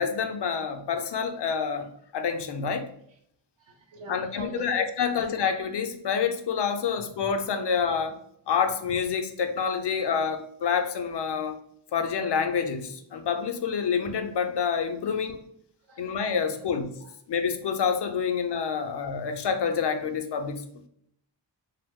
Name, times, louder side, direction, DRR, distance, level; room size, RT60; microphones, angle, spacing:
voice 1, 0.0-2.9 4.1-8.2 8.5-11.6 11.9-15.4 16.0-16.9 17.3-20.6, left 6 dB, 65° left, 6 dB, 0.5 m, -27 dB
voice 2, 3.6-4.7 5.1-5.2 7.0-7.1 15.9-16.1 16.5-16.6 17.0-17.1 18.8-18.9, right 2 dB, 75° right, 3 dB, 0.8 m, -42 dB
2.9 x 2.0 x 3.4 m, 0.69 s
wide cardioid pair, 75°, 45 cm